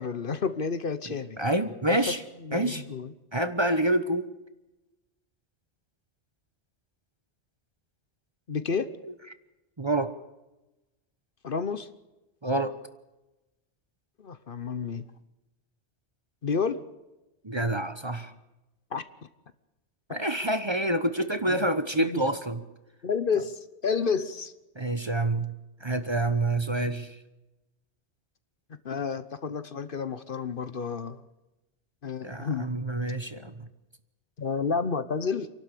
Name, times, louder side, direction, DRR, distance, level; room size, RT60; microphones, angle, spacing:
voice 1, 0.0-1.4 1.9-2.0 2.4-3.1 8.5-8.9 11.4-11.9 14.2-15.0 16.4-16.8 18.9-19.0 21.5-21.7 22.0-22.2 23.0-24.5 28.7-31.2 32.0-32.7 34.4-35.5, left 5 dB, 55° left, 13 dB, 1.1 m, -30 dB
voice 2, 1.4-2.2 2.5-2.8 3.3-4.3 9.8-10.1 12.4-12.7 17.4-18.3 20.1-22.6 24.8-25.5 25.8-27.2 32.2-33.7, right 1 dB, 25° right, 10 dB, 1.0 m, -27 dB
28.0 x 12.0 x 8.3 m, 1.0 s
omnidirectional pair, 1.1 m